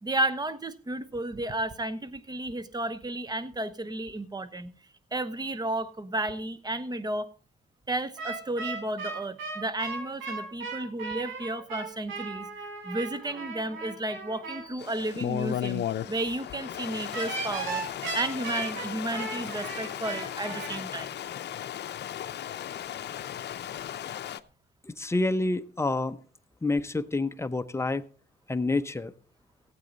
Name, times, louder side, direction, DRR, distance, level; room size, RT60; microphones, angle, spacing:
voice 1, 0.0-4.7 5.1-7.3 7.9-17.8 18.1-21.1, right 1 dB, 20° right, 13 dB, 1.1 m, -33 dB
sound 1, 8.2-14.7 17.1-20.8, right 4 dB, 90° right, 5.1 m, -36 dB
Stream, 14.8-24.4, left 11 dB, 60° left, 0.7 m, -36 dB
voice 2, 24.8-26.2 26.6-28.0 28.5-29.1, left 2 dB, 15° left, 10 dB, 0.8 m, -28 dB
16.0 x 8.7 x 4.0 m, 0.41 s
cardioid pair, 90°, 20 cm